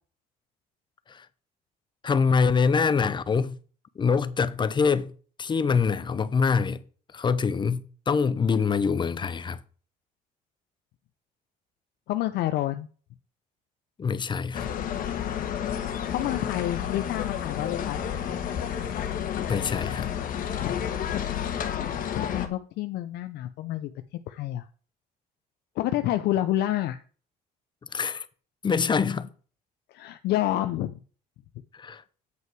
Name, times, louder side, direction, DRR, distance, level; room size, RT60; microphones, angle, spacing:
voice 1, 2.0-3.5 4.0-5.1 5.4-6.8 7.1-9.6 14.0-14.7 19.5-20.1 27.9-28.2 28.6-29.3 31.8-32.0, left 5 dB, 25° left, 0.5 m, -24 dB
voice 2, 12.1-12.9 16.1-18.0 20.6-20.8 21.7-23.9 24.3-24.6 25.8-27.0 29.9-31.0, left 14 dB, 75° left, 0.5 m, -29 dB
sound 1, 14.5-22.5, left 9 dB, 55° left, 1.2 m, -30 dB
7.9 x 5.5 x 4.6 m
cardioid pair, 110°, 17 cm